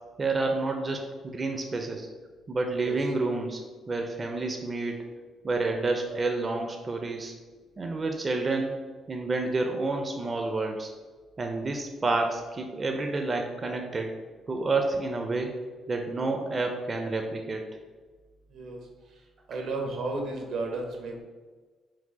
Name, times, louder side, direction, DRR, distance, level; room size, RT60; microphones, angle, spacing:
voice 1, 0.2-2.1 2.5-3.6 3.9-5.0 5.4-7.3 7.8-8.8 9.1-10.9 11.4-14.1 14.5-15.5 15.9-17.6, right 3 dB, 35° right, 3 dB, 0.4 m, -29 dB
voice 2, 18.5-18.8 19.5-21.2, right 2 dB, 80° right, 2 dB, 0.8 m, -33 dB
4.6 x 2.1 x 4.0 m, 1.4 s
cardioid pair, 90°, 0 cm